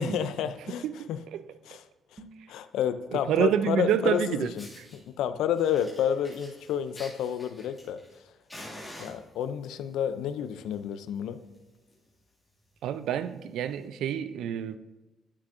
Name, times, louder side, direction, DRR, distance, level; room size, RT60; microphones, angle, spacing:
voice 1, 0.0-1.2 1.7-1.8 2.1-2.2 2.5-4.7 4.9-8.0 9.0-11.4, left 9 dB, 85° left, 0.4 m, -30 dB
voice 2, 0.8-1.4 3.1-4.5 4.8-4.9 12.8-14.8, right 9 dB, 80° right, 0.3 m, -28 dB
sound 1, 2.1-2.6, right 2 dB, 35° right, 1.0 m, -50 dB
Fire, 4.1-4.2 4.5-5.0 5.5-8.2 8.5-9.7 10.5-10.7 11.1-11.2 11.5-11.6 11.9-12.1 12.7-12.8 13.7-13.8, left 1 dB, 10° left, 2.1 m, -47 dB
9.8 x 5.9 x 2.5 m
cardioid pair, 90°, 0 cm